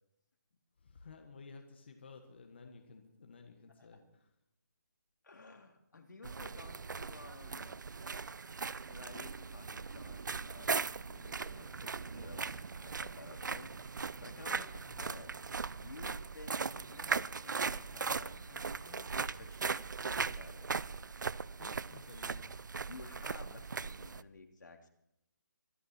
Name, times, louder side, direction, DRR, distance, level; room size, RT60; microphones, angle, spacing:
voice 1, 0.8-4.3 21.6-22.5, left 4 dB, 35° left, 4 dB, 1.5 m, -54 dB
voice 2, 5.2-7.7 8.9-15.3 15.8-20.7 22.9-24.9, left 3 dB, 80° left, 3 dB, 3.0 m, -53 dB
sound 1, 6.2-24.2, right 5 dB, 80° right, 0.5 m, -39 dB
sound 2, 9.8-23.3, right 4 dB, 45° right, 1.1 m, -57 dB
25.0 x 10.0 x 4.4 m, 0.80 s
hypercardioid pair, 180°, 10 cm